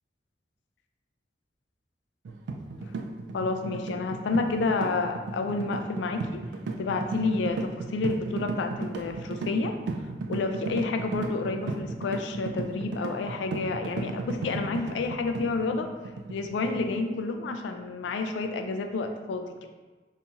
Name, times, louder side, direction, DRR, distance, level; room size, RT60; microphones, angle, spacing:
sound 1, 2.2-16.9, right 3 dB, 80° right, 0.3 m, -35 dB
voice 1, 3.3-6.4 6.8-9.8 10.3-15.9 16.3-19.5, left 3 dB, 85° left, 6 dB, 0.3 m, -30 dB
2.8 x 2.6 x 3.5 m, 1.3 s
head